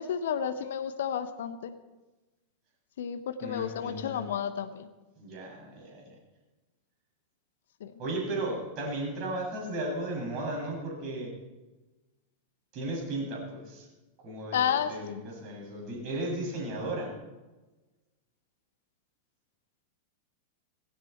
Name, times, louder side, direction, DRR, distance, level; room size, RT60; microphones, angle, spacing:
voice 1, 0.0-1.7 3.0-4.9 7.8-7.9 14.5-15.2, left 8 dB, 60° left, 12 dB, 1.0 m, -31 dB
voice 2, 3.4-4.4 5.2-6.1 8.0-11.3 12.7-13.9 14.2-14.6 14.9-17.2, right 1 dB, 40° right, -1 dB, 7.3 m, -35 dB
19.0 x 16.5 x 4.6 m, 1.1 s
figure-of-eight pair, 90°, 0 cm